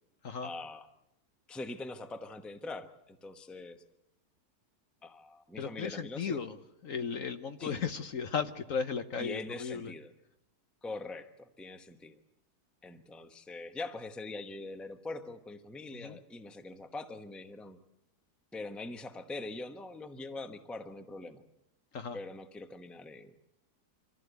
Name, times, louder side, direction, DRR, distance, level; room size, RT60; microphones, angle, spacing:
voice 1, 0.4-0.9 1.5-3.8 5.0-6.4 7.6-7.7 9.2-10.1 10.8-12.2 12.8-17.8 18.5-21.4 22.1-23.3, left 2 dB, ahead, 8 dB, 0.8 m, -43 dB
voice 2, 5.6-6.6 6.8-9.9 15.9-16.2 21.9-22.2, left 6 dB, 55° left, 9 dB, 1.2 m, -35 dB
24.5 x 15.0 x 8.1 m, 0.87 s
omnidirectional pair, 1.8 m